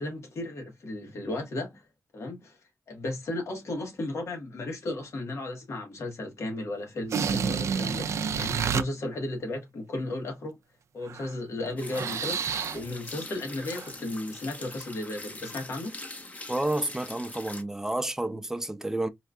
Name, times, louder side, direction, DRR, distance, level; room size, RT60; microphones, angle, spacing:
voice 1, 0.0-1.9 2.1-2.6 2.9-10.6 10.9-16.0, left 2 dB, 70° left, 1.4 m, -35 dB
sound 1, 7.0-8.8 11.1-11.3 11.7-12.9 13.7-13.9, right 6 dB, 80° right, 0.3 m, -29 dB
sound 2, 11.8-17.6, left 2 dB, 30° left, 0.7 m, -43 dB
voice 2, 16.5-19.1, right 1 dB, 10° right, 0.5 m, -30 dB
4.4 x 2.4 x 2.3 m
wide cardioid pair, 95°, 5 cm